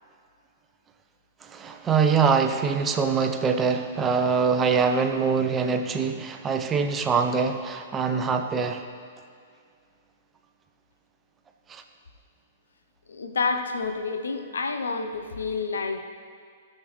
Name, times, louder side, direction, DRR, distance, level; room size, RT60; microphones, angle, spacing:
voice 1, 1.4-8.8 11.7-11.8, right 5 dB, 15° right, 6 dB, 0.7 m, -24 dB
voice 2, 13.1-16.1, left 4 dB, 65° left, 6 dB, 0.8 m, -29 dB
18.0 x 6.6 x 3.2 m, 2.2 s
figure-of-eight pair, 110°, 0 cm